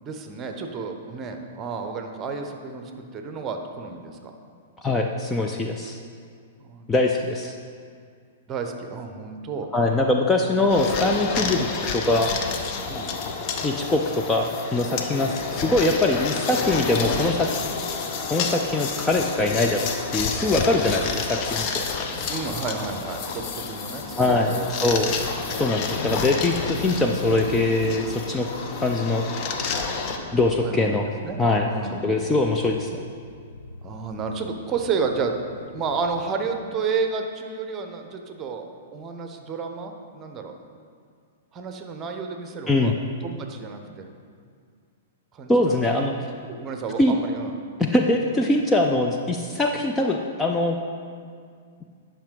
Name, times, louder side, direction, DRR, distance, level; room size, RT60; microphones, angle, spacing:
voice 1, 0.0-4.3 6.6-7.3 8.5-9.7 11.4-11.6 12.9-13.2 15.1-15.3 19.2-19.5 22.3-24.7 25.0-25.3 25.5-25.8 30.6-31.0 31.2-31.4 31.7-32.2 33.8-35.4 35.7-38.7 38.9-40.5 41.5-44.1 45.3-46.0 46.4-47.5, right 5 dB, 25° right, 5 dB, 0.9 m, -31 dB
voice 2, 4.8-6.0 6.9-7.5 9.7-11.7 11.9-12.3 13.6-17.6 18.3-21.9 24.2-25.2 25.5-28.5 28.8-29.2 30.3-31.1 31.4-33.0 42.7-42.9 45.5-46.1 47.0-47.1 47.8-50.8, left 2 dB, 10° left, 1 dB, 0.5 m, -22 dB
sound 1, 10.7-30.2, left 5 dB, 35° left, 0.8 m, -29 dB
Motorcycle, 20.6-36.3, left 1 dB, 75° left, 1.1 m, -41 dB
10.0 x 5.8 x 4.9 m, 2.2 s
figure-of-eight pair, 105°, 0 cm